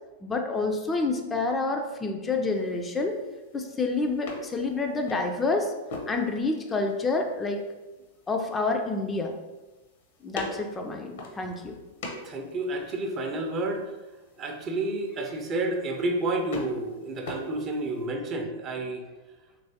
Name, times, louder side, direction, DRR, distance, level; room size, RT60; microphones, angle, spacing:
voice 1, 0.2-3.2 3.5-5.7 6.1-7.6 8.3-9.4 10.2-11.8, left 3 dB, 20° left, 3 dB, 0.3 m, -28 dB
sound 1, 2.5-18.1, left 2 dB, 65° left, 0.7 m, -44 dB
voice 2, 12.2-13.8 14.4-19.0, right 2 dB, 35° right, 3 dB, 0.5 m, -30 dB
3.2 x 3.0 x 2.7 m, 1.1 s
hypercardioid pair, 95°, 0 cm